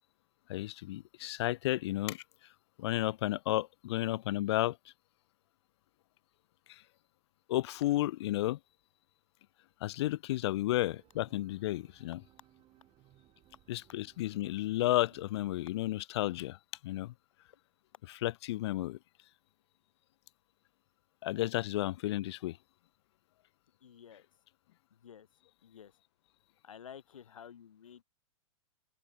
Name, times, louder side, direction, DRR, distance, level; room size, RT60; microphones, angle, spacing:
voice 1, 0.5-2.2 2.8-4.8 6.7-6.8 7.5-8.6 9.8-12.2 13.7-16.6 16.8-17.1 18.2-19.0 21.2-22.6, left 16 dB, 55° left, 0.7 m, -32 dB
sound 1, 10.8-15.8, right 15 dB, 30° right, 5.1 m, -64 dB
voice 2, 23.8-24.3 24.9-25.3 25.6-26.0 26.6-28.0, left 8 dB, 70° left, 4.6 m, -52 dB
hypercardioid pair, 115°, 17 cm